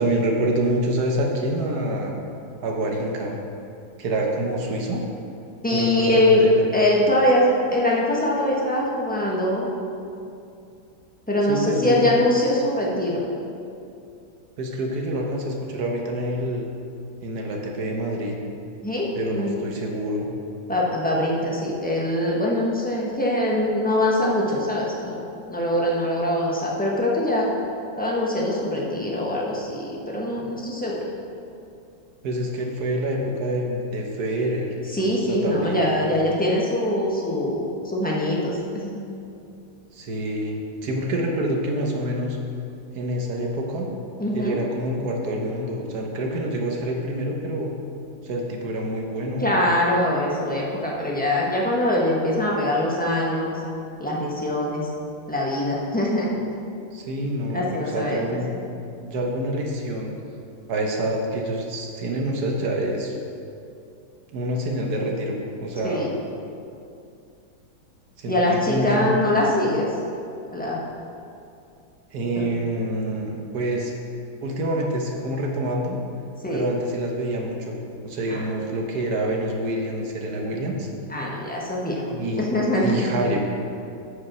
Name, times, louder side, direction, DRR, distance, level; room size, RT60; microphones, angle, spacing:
voice 1, 0.0-2.1 2.6-3.4 4.0-5.0 5.7-6.7 11.5-12.0 14.6-16.7 17.2-18.3 19.1-20.3 32.2-34.7 35.3-35.9 39.9-42.4 42.9-43.9 44.3-47.7 48.2-49.4 56.9-58.5 59.0-60.1 60.7-63.1 64.3-66.1 68.2-69.2 72.1-73.9 74.4-76.0 76.5-77.8 78.0-80.9 82.1-82.5 82.8-83.4, right 1 dB, 60° right, 0 dB, 1.3 m, -27 dB
voice 2, 5.6-6.5 6.7-9.7 11.3-13.2 18.8-19.7 20.7-27.5 28.0-31.1 34.9-39.0 44.2-44.6 49.4-53.6 54.0-54.9 55.3-56.3 57.5-58.2 65.8-66.1 68.3-69.9 70.5-70.8 72.3-72.5 76.4-76.6 78.3-78.4 81.1-82.0 82.4-83.3, left 1 dB, 10° left, -4 dB, 0.6 m, -23 dB
8.3 x 5.4 x 6.1 m, 2.5 s
omnidirectional pair, 2.2 m